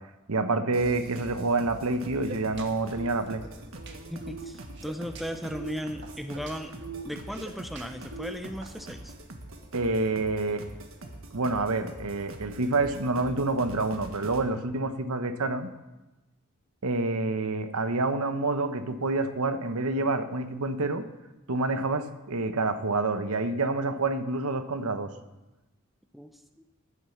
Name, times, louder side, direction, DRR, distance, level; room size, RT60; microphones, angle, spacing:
voice 1, 0.3-3.4 9.7-10.7 11.3-15.7 16.8-21.0 21.5-25.1, right 3 dB, 85° right, 10 dB, 0.9 m, -28 dB
sound 1, 0.7-14.4, right 1 dB, 65° right, 1.5 m, -44 dB
sound 2, 1.9-8.8, right 3 dB, 50° right, 1.5 m, -43 dB
voice 2, 4.1-6.7 7.0-9.1 26.1-26.3, equal, ahead, 7 dB, 0.6 m, -36 dB
11.0 x 9.6 x 7.2 m, 1.0 s
head